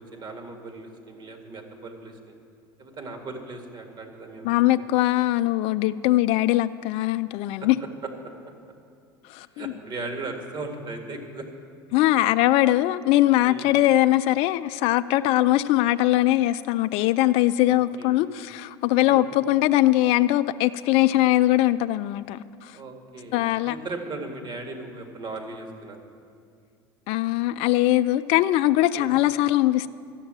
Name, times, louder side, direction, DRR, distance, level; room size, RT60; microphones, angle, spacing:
voice 1, 0.0-2.4 2.8-4.9 7.6-7.7 8.0-8.1 9.5-11.5 13.4-13.7 17.6-18.1 19.0-19.3 22.7-26.0 29.0-29.1, right 3 dB, 40° right, 2.1 m, -37 dB
voice 2, 4.4-7.8 9.3-9.6 11.9-22.8 23.3-23.8 27.1-29.9, left 15 dB, 60° left, 0.4 m, -21 dB
13.0 x 7.2 x 9.0 m
hypercardioid pair, 90°, 12 cm